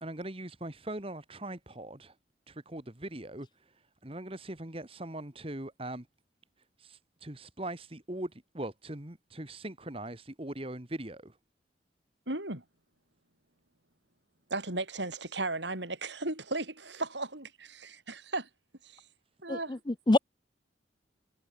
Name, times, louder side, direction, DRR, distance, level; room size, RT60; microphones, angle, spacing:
voice 1, 0.0-2.1 2.5-3.5 4.0-6.0 6.8-11.3, right 1 dB, 30° right, 2.0 m, -40 dB
voice 2, 12.3-12.6 14.5-18.5 18.8-19.0 19.4-19.8, right 2 dB, 70° right, 7.6 m, -36 dB
voice 3, 19.5-20.2, left 2 dB, 25° left, 0.5 m, -26 dB
head